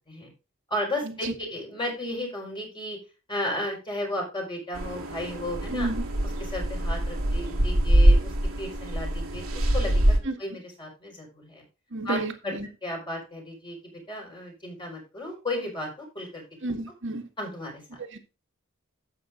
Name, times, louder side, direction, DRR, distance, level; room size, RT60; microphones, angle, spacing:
voice 1, 0.7-3.0 3.3-5.9 6.4-11.6 12.0-12.2 12.4-12.5 12.8-16.4 17.4-18.0, left 1 dB, 25° left, 4.7 m, -34 dB
sound 1, 4.7-10.2, right 1 dB, 85° right, 1.8 m, -23 dB
voice 2, 5.7-6.0 10.2-10.3 11.9-12.7 16.6-17.3 18.1-18.2, right 2 dB, 65° right, 1.7 m, -31 dB
12.5 x 7.9 x 2.5 m
head